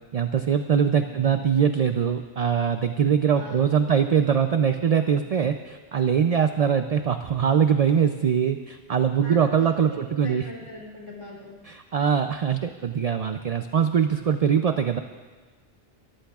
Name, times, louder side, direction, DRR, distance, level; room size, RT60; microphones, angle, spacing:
voice 1, 0.1-10.5 11.7-15.0, right 7 dB, 50° right, 7 dB, 0.5 m, -22 dB
voice 2, 3.3-4.0 9.2-11.5, left 1 dB, 25° left, -3 dB, 3.2 m, -41 dB
23.0 x 14.0 x 2.4 m, 1.4 s
omnidirectional pair, 1.1 m